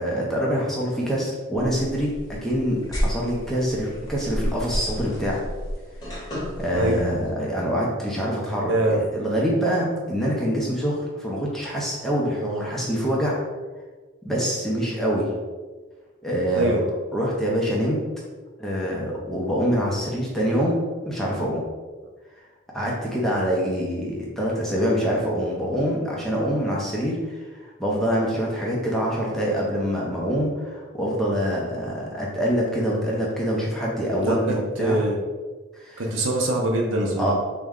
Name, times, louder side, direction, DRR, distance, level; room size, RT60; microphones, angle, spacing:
voice 1, 0.0-5.4 6.1-6.3 6.6-13.4 14.2-15.3 16.2-16.7 17.1-18.0 18.6-20.8 21.0-21.6 22.7-35.0 35.7-36.0 37.2-37.3, equal, ahead, -5 dB, 0.5 m, -25 dB
sound 1, 1.6-7.3, equal, 20° left, 0.9 m, -31 dB
voice 2, 8.6-9.0 16.5-16.8 34.2-35.2 36.0-37.3, right 1 dB, 65° right, 1 dB, 0.5 m, -23 dB
3.5 x 2.1 x 3.5 m, 1.4 s
head